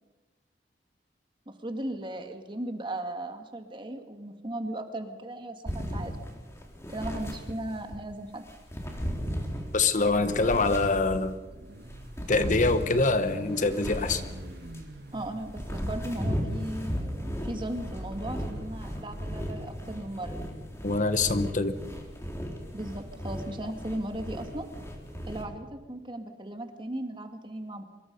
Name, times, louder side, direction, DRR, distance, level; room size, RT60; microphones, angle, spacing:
voice 1, 1.5-6.2 6.9-8.5 15.1-20.4 22.7-24.7 25.3-27.8, right 1 dB, 30° right, 5 dB, 2.1 m, -37 dB
sound 1, 5.7-8.0 8.4-11.4 11.8-14.9 15.3-25.4, equal, 15° left, 3.7 m, -36 dB
voice 2, 9.7-11.3 12.3-14.2 20.8-21.8, left 3 dB, 45° left, 10 dB, 1.1 m, -25 dB
Car / Idling / Accelerating revving vroom, 10.0-19.5, right 1 dB, 65° right, 1.6 m, -45 dB
25.0 x 22.0 x 5.5 m, 1.2 s
head